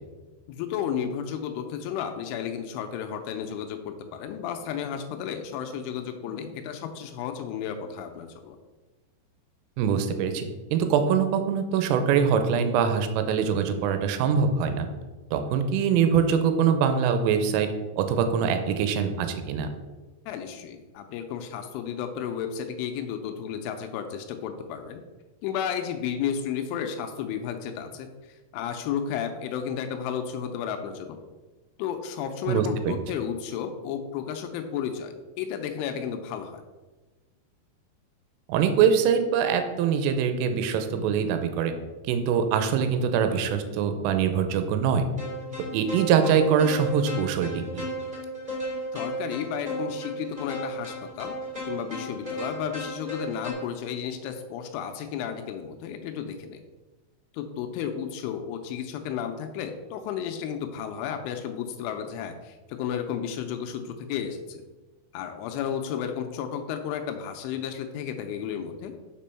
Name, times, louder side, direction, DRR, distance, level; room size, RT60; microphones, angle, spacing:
voice 1, 0.5-8.6 20.3-25.0 25.4-31.2 31.8-36.6 48.9-51.3 51.7-56.6 57.3-64.7 65.1-68.9, left 8 dB, 85° left, 6 dB, 3.0 m, -33 dB
voice 2, 9.8-14.9 15.3-19.7 32.5-33.0 38.5-41.7 42.1-45.1 45.7-47.8, right 7 dB, 90° right, 8 dB, 3.3 m, -23 dB
sound 1, 45.2-53.5, equal, 35° right, 0.7 m, -35 dB
6.7 x 5.3 x 5.6 m, 1.2 s
omnidirectional pair, 5.8 m